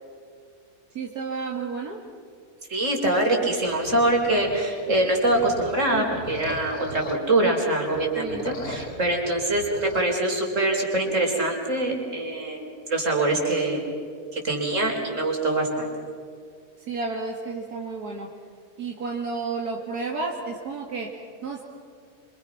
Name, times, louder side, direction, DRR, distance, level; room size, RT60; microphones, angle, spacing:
voice 1, 0.9-2.0 8.2-8.4 16.8-18.3 18.8-21.6, right 4 dB, 80° right, 0 dB, 2.4 m, -31 dB
voice 2, 2.7-13.8 14.3-15.9, right 2 dB, 50° right, 0 dB, 4.6 m, -24 dB
sound 1, 3.6-7.5 7.9-10.1, left 1 dB, 80° left, 3.0 m, -38 dB
26.5 x 26.0 x 5.9 m, 2.3 s
omnidirectional pair, 1.7 m